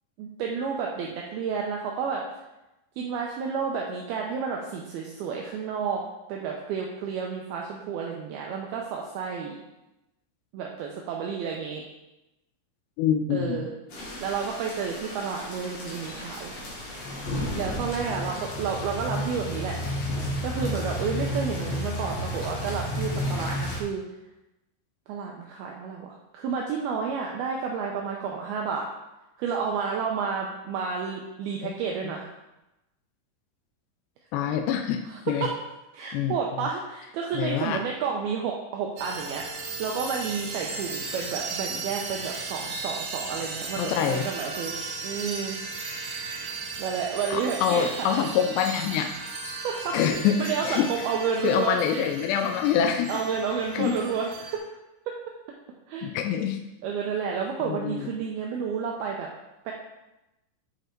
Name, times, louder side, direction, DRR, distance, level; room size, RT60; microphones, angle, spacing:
voice 1, 0.2-2.3 3.0-6.0 6.3-9.6 10.5-11.8 13.3-13.7 14.2-16.5 17.5-19.8 20.4-24.0 25.1-28.9 29.4-32.3 35.1-35.6 35.9-45.6 46.8-48.2 49.6-50.0 50.4-52.0 52.4-52.5 53.1-54.6 55.1-55.2 55.9-56.1 56.8-59.3 59.7-59.8, right 6 dB, 80° right, 0 dB, 2.3 m, -31 dB
voice 2, 13.0-13.6 34.3-35.0 35.3-35.4 36.1-36.3 37.4-37.8 43.8-44.3 47.3-49.1 49.9-50.9 51.4-53.2 53.7-53.9 56.0-56.6 57.6-58.1, left 8 dB, 80° left, 5 dB, 2.5 m, -25 dB
sound 1, 13.9-23.8, left 1 dB, 50° left, 2.1 m, -32 dB
sound 2, 39.0-54.6, right 3 dB, 65° right, 2.3 m, -36 dB
8.6 x 5.2 x 4.4 m, 0.97 s
omnidirectional pair, 5.1 m